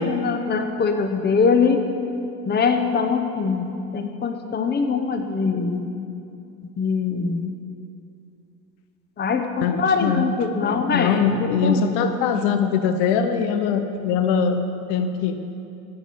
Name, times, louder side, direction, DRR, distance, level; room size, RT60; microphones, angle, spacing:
voice 1, 0.0-1.8 2.5-5.9 6.8-7.5 9.2-11.3 11.6-11.8, left 5 dB, 25° left, 6 dB, 0.8 m, -22 dB
voice 2, 9.6-10.3 10.6-14.6 14.9-15.4, left 6 dB, 85° left, 8 dB, 0.9 m, -22 dB
10.5 x 5.9 x 8.5 m, 2.7 s
cardioid pair, 100°, 38 cm